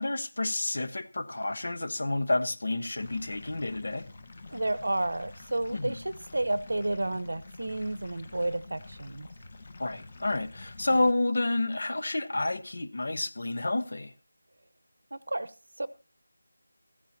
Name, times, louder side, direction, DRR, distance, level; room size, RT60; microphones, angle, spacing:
voice 1, 0.0-4.0 5.7-6.0 9.8-14.1, left 2 dB, 60° left, 1.1 m, -29 dB
sound 1, 3.0-11.1, left 3 dB, 35° left, 1.2 m, -48 dB
voice 2, 4.5-9.3 15.1-15.9, right 2 dB, 80° right, 0.9 m, -31 dB
15.0 x 14.0 x 2.8 m
figure-of-eight pair, 175°, 0 cm